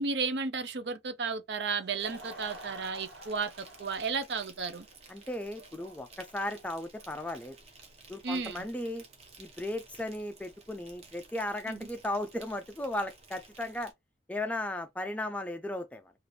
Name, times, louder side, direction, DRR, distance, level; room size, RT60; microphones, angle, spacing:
voice 1, 0.0-4.9 8.2-8.6 11.7-11.9, right 4 dB, 65° right, 0.5 m, -33 dB
Laughter / Crowd, 1.6-8.5, right 1 dB, 80° right, 1.4 m, -50 dB
Insect, 2.0-13.9, right 3 dB, 35° right, 0.8 m, -55 dB
voice 2, 5.1-7.5 8.1-9.0 9.4-13.9 14.3-16.1, left 1 dB, 10° left, 0.3 m, -36 dB
3.3 x 2.4 x 2.6 m
head